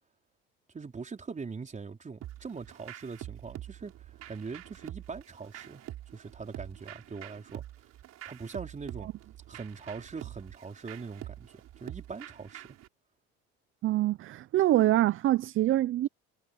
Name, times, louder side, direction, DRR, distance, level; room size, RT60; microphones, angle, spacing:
voice 1, 0.7-3.9 4.3-5.8 6.1-7.6 8.2-9.1 9.5-12.7, right 5 dB, 25° right, 4.5 m, -42 dB
sound 1, 2.2-12.9, right 13 dB, 60° right, 5.3 m, -46 dB
voice 2, 13.8-16.1, right 14 dB, 45° right, 0.5 m, -25 dB
supercardioid pair, 90°, 29 cm